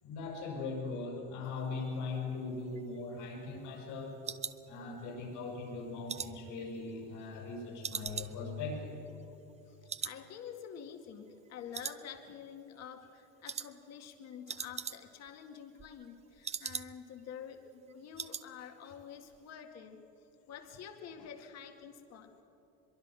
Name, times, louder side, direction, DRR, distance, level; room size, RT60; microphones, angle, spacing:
voice 1, 0.0-4.2 4.7-9.0, left 3 dB, 75° left, -1 dB, 6.4 m, -40 dB
sound 1, 2.6-5.3 5.7-7.5 7.8-9.6 9.9-10.2 10.5-10.6 11.1-11.5 11.7-12.5 12.8-13.1 13.5-13.7 14.0-14.1 14.3-15.3 15.6-17.2 17.5-17.6 17.9-18.5 18.8-19.0 19.3-19.4, right 7 dB, 20° right, 0.5 m, -42 dB
voice 2, 10.0-20.0 20.5-22.4, left 8 dB, 50° left, 5 dB, 2.1 m, -48 dB
23.0 x 23.0 x 6.2 m, 3.0 s
cardioid pair, 135°, 33 cm